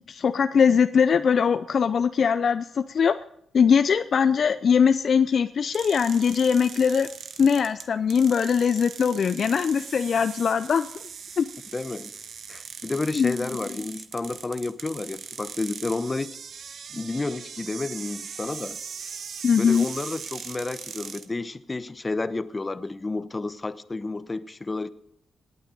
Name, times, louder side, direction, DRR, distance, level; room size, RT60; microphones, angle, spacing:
voice 1, 0.1-3.1 3.5-7.1 7.4-10.9 11.4-11.5 13.2-13.3 19.4-19.9, left 6 dB, 60° left, 11 dB, 0.4 m, -21 dB
sound 1, 5.7-21.3, right 6 dB, 65° right, 0.9 m, -40 dB
voice 2, 11.7-12.1 12.5-16.3 16.9-18.8 19.5-24.9, left 3 dB, 30° left, 14 dB, 0.9 m, -31 dB
18.5 x 8.9 x 5.2 m, 0.71 s
supercardioid pair, 50°, 0 cm